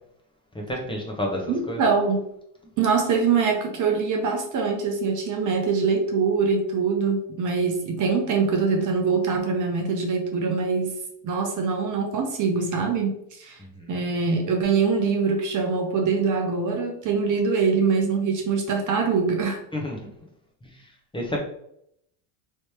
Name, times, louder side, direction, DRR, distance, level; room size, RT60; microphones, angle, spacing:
voice 1, 0.5-1.8 13.6-13.9 19.7-20.0 21.1-21.4, left 1 dB, 10° left, -1 dB, 0.9 m, -30 dB
voice 2, 1.5-2.2 2.8-11.0 11.2-13.6 13.9-19.6, right 5 dB, 40° right, 2 dB, 0.8 m, -23 dB
3.3 x 3.1 x 2.9 m, 0.73 s
supercardioid pair, 105°, 49 cm